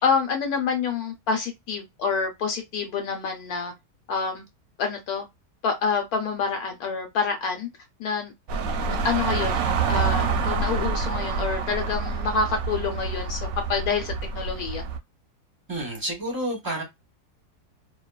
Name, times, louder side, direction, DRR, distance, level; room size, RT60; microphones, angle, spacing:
voice 1, 0.0-3.7 4.1-4.4 4.8-5.2 5.6-7.7 8.0-8.3 8.9-14.8, left 5 dB, 75° left, 1.1 m, -27 dB
sound 1, 8.5-15.0, right 5 dB, 70° right, 0.9 m, -27 dB
voice 2, 15.7-16.8, right 1 dB, 20° right, 0.7 m, -29 dB
2.8 x 2.2 x 2.3 m
omnidirectional pair, 1.7 m